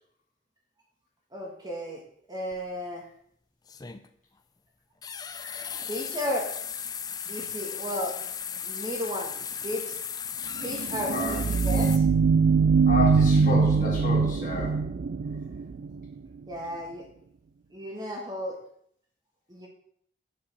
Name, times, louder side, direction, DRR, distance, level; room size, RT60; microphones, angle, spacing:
voice 1, 1.3-2.0 2.3-3.0 5.8-6.5 7.3-8.2 8.6-9.3 9.6-9.9 10.6-12.1 16.5-17.0 17.7-18.6 19.5-19.7, equal, 20° right, -1 dB, 1.6 m, -34 dB
sound 1, 2.5-2.6 3.7-4.1 5.0-12.0, left 7 dB, 20° left, 0.4 m, -36 dB
sound 2, 10.6-16.1, right 5 dB, 55° right, 0.3 m, -23 dB
voice 2, 11.1-11.4 12.9-14.8, left 1 dB, 45° left, -2 dB, 2.7 m, -30 dB
7.4 x 5.5 x 6.6 m, 0.66 s
head